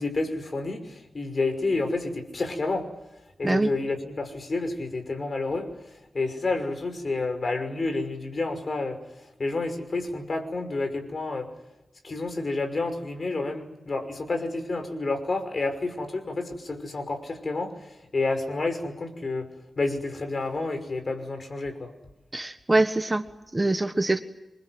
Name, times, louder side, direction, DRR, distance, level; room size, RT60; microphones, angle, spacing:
voice 1, 0.0-2.9 3.4-5.7 6.1-9.0 9.4-11.5 12.0-19.5 19.8-21.9, left 3 dB, 40° left, 6 dB, 5.8 m, -29 dB
voice 2, 22.3-23.2 23.5-24.2, right 2 dB, 20° right, 8 dB, 1.4 m, -23 dB
28.0 x 24.0 x 8.0 m, 0.93 s
wide cardioid pair, 115°, 0 cm